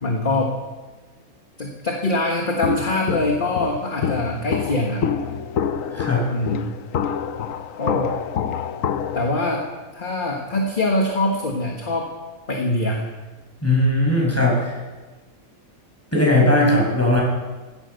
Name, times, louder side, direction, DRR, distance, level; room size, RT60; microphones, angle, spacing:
voice 1, 0.0-0.6 1.6-5.1 6.3-6.7 7.8-8.2 9.1-9.7 9.9-12.1 12.5-13.0 16.5-16.8, left 1 dB, 35° left, 1 dB, 1.5 m, -23 dB
Walk footsteps, 2.6-9.3, left 7 dB, 70° left, 1.1 m, -27 dB
voice 2, 5.9-6.3 13.6-14.8 16.1-17.2, left 1 dB, 10° left, -3 dB, 5.7 m, -19 dB
16.0 x 11.5 x 6.7 m, 1.3 s
omnidirectional pair, 1.5 m